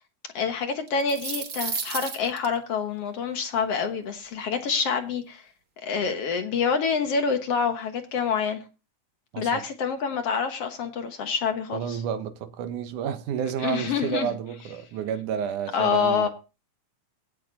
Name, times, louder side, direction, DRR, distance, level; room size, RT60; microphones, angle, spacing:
voice 1, 0.4-5.4 5.8-8.6 9.4-12.0 13.6-14.3 15.7-16.3, left 6 dB, 60° left, 2.0 m, -27 dB
sound 1, 0.9-2.5, right 5 dB, 50° right, 1.0 m, -32 dB
voice 2, 11.7-16.3, right 8 dB, 85° right, 2.6 m, -30 dB
17.0 x 6.2 x 4.0 m
omnidirectional pair, 3.5 m